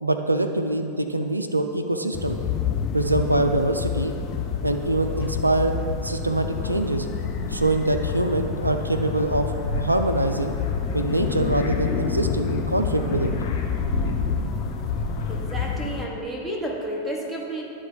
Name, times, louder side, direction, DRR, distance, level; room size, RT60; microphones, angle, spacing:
voice 1, 0.0-2.4 2.9-4.1 4.6-5.7 6.0-7.1 7.5-9.5 9.8-10.5 10.9-13.3, right 2 dB, 85° right, 6 dB, 0.3 m, -24 dB
sound 1, 2.1-16.1, left 7 dB, 35° left, 0.5 m, -29 dB
sound 2, 6.5-16.1, left 3 dB, 50° left, 0.9 m, -33 dB
voice 2, 15.3-17.6, right 1 dB, ahead, -2 dB, 1.1 m, -31 dB
10.5 x 3.8 x 4.7 m, 2.6 s
figure-of-eight pair, 90°, 0 cm